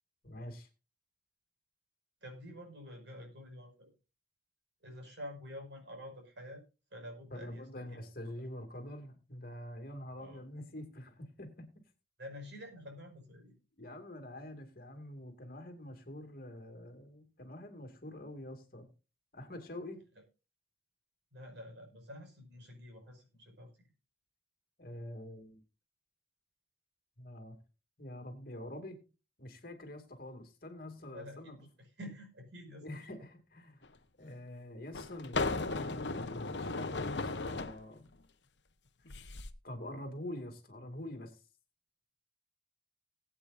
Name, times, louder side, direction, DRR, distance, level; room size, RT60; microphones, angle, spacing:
voice 1, 0.2-0.7 7.3-11.7 13.8-18.9 19.3-20.0 24.8-25.6 27.2-27.6 28.0-29.0 29.4-31.6 32.8-33.8 34.2-38.1 39.6-41.3, left 1 dB, 50° left, 5 dB, 2.5 m, -46 dB
voice 2, 2.2-3.9 4.8-6.6 6.9-8.5 10.2-10.4 12.2-13.5 21.3-23.9 31.1-33.3, left 1 dB, 65° right, 3 dB, 5.6 m, -49 dB
sound 1, 33.8-33.9 34.9-37.8 39.1-39.5, left 3 dB, 65° left, 1.0 m, -36 dB
20.5 x 8.5 x 2.6 m, 0.31 s
head